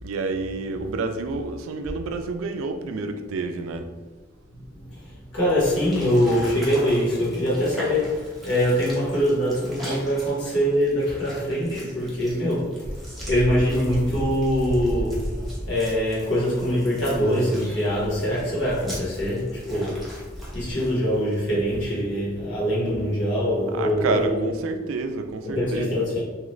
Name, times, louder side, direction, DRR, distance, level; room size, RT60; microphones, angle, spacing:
voice 1, 0.0-3.9 9.9-10.0 23.7-26.1, right 3 dB, 90° right, 6 dB, 0.3 m, -29 dB
voice 2, 4.7-15.4 15.7-20.2 20.5-24.4 25.4-26.2, equal, 65° left, -8 dB, 1.4 m, -24 dB
sound 1, 5.6-21.6, equal, ahead, 0.6 m, -42 dB
sound 2, 12.8-20.7, equal, 35° left, 0.9 m, -35 dB
2.9 x 2.4 x 3.1 m, 1.3 s
head